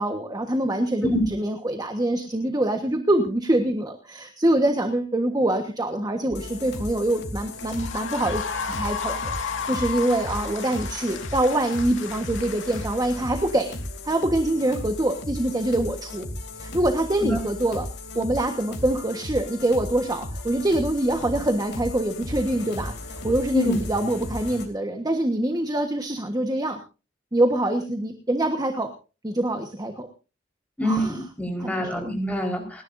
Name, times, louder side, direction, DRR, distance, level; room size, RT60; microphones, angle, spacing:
voice 1, 0.0-8.4 8.7-13.8 14.0-16.3 16.6-17.8 18.1-26.8 27.3-28.9 29.2-30.1 30.8-31.1 31.6-32.0, right 1 dB, 20° right, 5 dB, 1.3 m, -25 dB
voice 2, 1.0-1.3 17.2-17.4 23.5-23.8 30.8-32.8, equal, 10° left, 1 dB, 4.6 m, -25 dB
sound 1, 6.3-24.7, left 1 dB, 65° left, 2.9 m, -36 dB
sound 2, 7.5-13.9, left 6 dB, 85° left, 2.0 m, -34 dB
29.0 x 11.0 x 2.7 m, 0.33 s
head